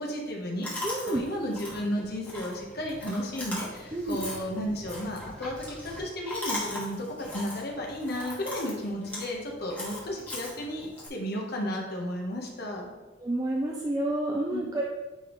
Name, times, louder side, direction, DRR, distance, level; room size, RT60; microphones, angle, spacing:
voice 1, 0.0-12.9 14.5-14.7, equal, 55° left, -1 dB, 1.1 m, -33 dB
Chewing mastication, 0.6-11.1, left 1 dB, 10° left, 1.5 m, -39 dB
voice 2, 0.8-1.2 3.9-4.2 13.2-14.9, right 1 dB, 20° right, -1 dB, 0.4 m, -29 dB
9.4 x 3.5 x 3.1 m, 1.2 s
head